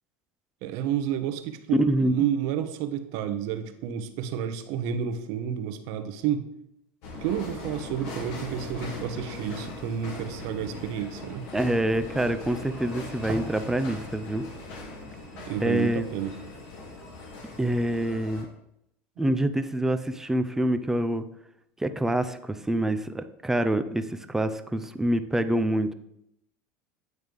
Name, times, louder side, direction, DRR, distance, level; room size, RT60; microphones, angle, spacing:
voice 1, 0.6-6.5 7.2-11.5 15.3-16.4, right 9 dB, 65° right, 9 dB, 0.8 m, -30 dB
voice 2, 1.8-2.2 11.5-14.4 15.6-16.1 17.6-18.5 19.2-21.2 21.8-25.9, right 1 dB, 5° right, 10 dB, 0.4 m, -26 dB
sound 1, 7.0-18.4, left 2 dB, 65° left, 2.1 m, -40 dB
sound 2, 10.6-12.6 13.0-13.8 14.1-14.3 14.7-14.8, right 2 dB, 40° right, 1.3 m, -42 dB
9.3 x 3.2 x 5.2 m, 0.79 s
supercardioid pair, 130°, 6 cm